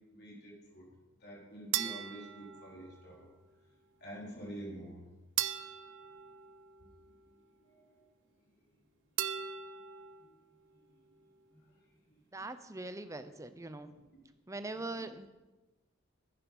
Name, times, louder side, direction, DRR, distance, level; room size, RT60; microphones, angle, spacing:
voice 1, 0.1-0.9 1.2-3.3 4.0-5.0 6.8-6.9 7.6-8.0 10.2-10.3 11.5-11.6 12.1-12.4 13.9-14.2 14.7-15.1, right 1 dB, 55° left, -4 dB, 3.8 m, -48 dB
sound 1, 1.7-3.2 5.4-7.2 9.2-10.3, right 11 dB, 65° right, 0.5 m, -38 dB
voice 2, 12.3-13.9 14.5-15.3, right 2 dB, 15° right, 10 dB, 0.6 m, -42 dB
10.0 x 9.7 x 5.4 m, 1.1 s
head